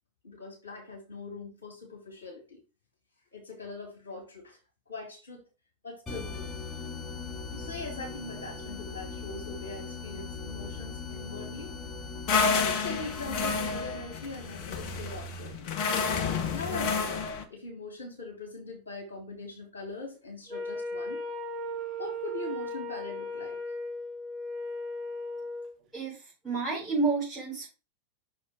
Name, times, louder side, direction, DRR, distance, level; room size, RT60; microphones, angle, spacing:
voice 1, 0.2-2.6 3.3-4.6 4.9-5.4 5.8-6.5 7.5-11.7 12.5-15.7 16.5-21.2 22.0-23.6, left 3 dB, 70° left, 1 dB, 2.1 m, -41 dB
sound 1, 6.1-15.4, left 4 dB, 15° left, 1.8 m, -40 dB
sound 2, 12.3-17.4, left 5 dB, 40° left, 1.1 m, -29 dB
Wind instrument woodwind instrument, 20.5-25.7, left 1 dB, 30° right, 1.1 m, -36 dB
voice 2, 25.9-27.7, right 4 dB, 5° right, -10 dB, 4.2 m, -30 dB
5.9 x 4.9 x 4.7 m, 0.31 s
figure-of-eight pair, 90°, 0 cm